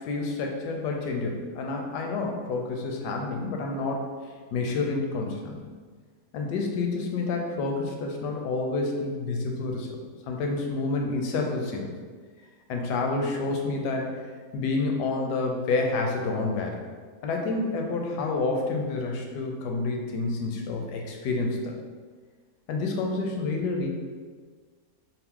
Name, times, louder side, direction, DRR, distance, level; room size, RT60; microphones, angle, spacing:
voice 1, 0.0-4.0 4.5-5.6 6.3-9.9 10.3-11.9 12.7-14.2 14.5-16.8 17.2-21.7 22.7-23.9, left 3 dB, 80° left, 1 dB, 1.2 m, -29 dB
4.4 x 2.1 x 3.6 m, 1.5 s
omnidirectional pair, 1.8 m